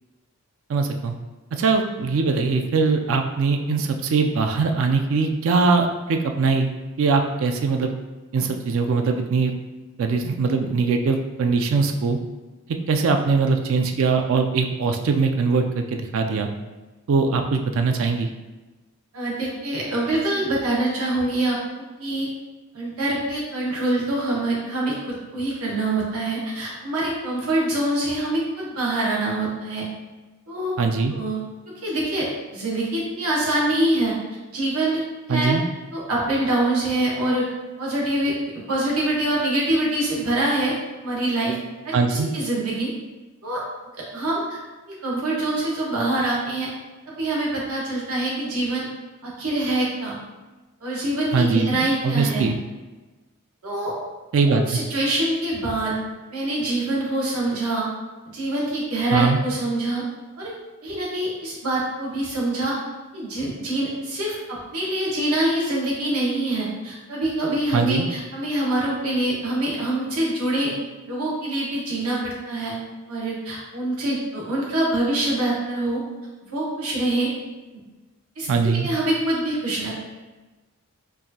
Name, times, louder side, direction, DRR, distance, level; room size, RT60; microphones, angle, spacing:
voice 1, 0.7-1.2 1.5-6.7 7.0-7.9 8.3-9.5 10.0-12.2 12.9-16.5 17.1-18.3 30.8-31.1 35.3-35.6 41.9-42.3 51.3-52.6 54.3-54.8 59.1-59.4 67.7-68.1 78.5-78.9, right 4 dB, 60° right, 5 dB, 0.3 m, -21 dB
voice 2, 19.1-21.6 22.0-22.3 22.7-29.9 30.5-30.7 31.1-31.4 31.6-34.1 34.5-35.0 35.3-35.6 35.9-37.5 37.8-40.7 41.0-41.6 41.8-42.9 43.4-43.6 44.1-44.6 45.0-46.7 47.1-48.9 49.2-50.2 50.8-52.4 53.6-53.9 54.5-56.0 56.3-57.9 58.2-60.0 60.4-60.5 60.8-62.8 63.1-70.7 71.1-72.8 73.1-76.0 76.5-77.3 78.4-79.9, right 1 dB, 85° right, -5 dB, 1.2 m, -25 dB
4.6 x 2.5 x 2.7 m, 1.2 s
head